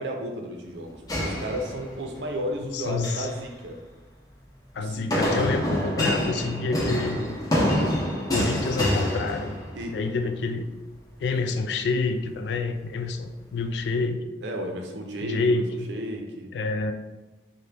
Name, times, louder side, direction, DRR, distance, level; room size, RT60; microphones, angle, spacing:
voice 1, 0.0-3.8 4.8-5.2 9.7-10.1 14.4-15.6 15.9-16.5, right 1 dB, 90° right, 2 dB, 0.5 m, -33 dB
sound 1, 1.1-2.2 2.8-3.3 5.1-9.9, equal, 20° left, 0.6 m, -26 dB
voice 2, 2.7-3.3 4.7-7.3 8.2-9.6 9.9-10.7 11.2-14.2 15.2-15.9 16.5-16.9, left 3 dB, 80° left, 8 dB, 0.3 m, -28 dB
3.9 x 2.2 x 3.3 m, 1.1 s
head